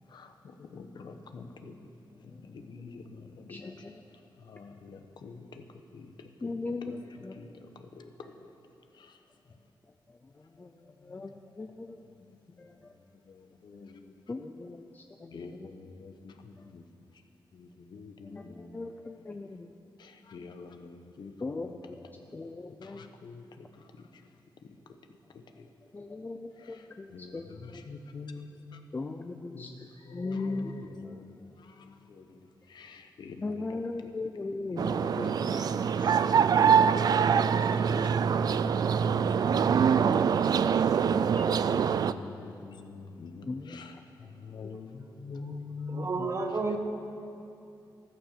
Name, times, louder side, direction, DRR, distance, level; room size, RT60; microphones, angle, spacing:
voice 1, 0.6-1.7 2.2-3.6 4.4-5.6 5.9-6.5 6.8-7.0 7.4-7.5 8.0-8.3 9.0-9.1 13.3-14.1 15.3-16.8 17.5-18.8 20.0-21.7 22.8-23.4 26.6-26.8 27.1-28.8 29.5-31.3 31.6-32.4 32.7-33.8 34.7-36.2 37.6-38.4 38.6-38.7 39.1-40.1 41.5-44.0 44.4-46.3, left 4 dB, 65° left, 6 dB, 1.1 m, -45 dB
voice 2, 3.5-4.0 6.4-7.4 10.6-10.7 11.0-12.0 12.6-12.9 14.3-15.7 18.2-19.7 21.4-23.1 25.9-27.8 28.9-29.7 30.1-31.2 33.4-35.4 37.6-38.9 41.1-41.7 43.5-43.8 44.6-44.7, left 3 dB, 20° left, 5 dB, 0.5 m, -39 dB
sound 1, 34.8-42.1, right 7 dB, 55° right, 0.4 m, -24 dB
voice 3, 45.9-46.8, right 3 dB, 35° right, 5 dB, 1.3 m, -31 dB
14.5 x 13.5 x 6.8 m, 2.6 s
wide cardioid pair, 155°, 8 cm